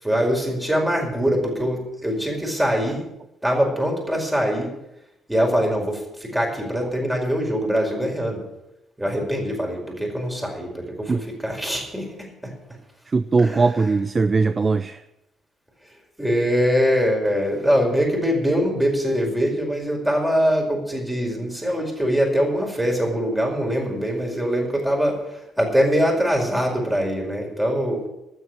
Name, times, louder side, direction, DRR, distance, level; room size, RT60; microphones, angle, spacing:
voice 1, 0.0-3.1 3.4-4.7 5.3-8.4 9.0-12.5 13.4-13.6 16.2-28.0, equal, 10° right, 0 dB, 5.1 m, -23 dB
voice 2, 13.1-15.0, right 4 dB, 30° right, 13 dB, 0.5 m, -20 dB
12.5 x 8.1 x 9.9 m, 0.89 s
figure-of-eight pair, 45°, 0 cm